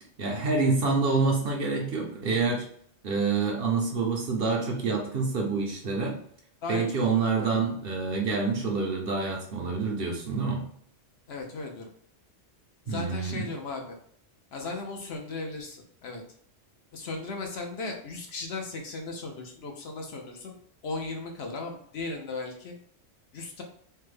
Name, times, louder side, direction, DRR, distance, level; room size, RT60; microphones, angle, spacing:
voice 1, 0.2-2.6 3.0-6.2 6.7-10.6 12.9-13.5, right 4 dB, 60° right, 0 dB, 0.8 m, -27 dB
voice 2, 6.6-7.6 11.3-11.9 12.9-14.0 14.5-16.2 16.9-20.5 20.8-22.7 23.3-23.6, left 3 dB, 65° left, 2 dB, 0.8 m, -36 dB
3.3 x 2.0 x 3.2 m, 0.64 s
omnidirectional pair, 1.3 m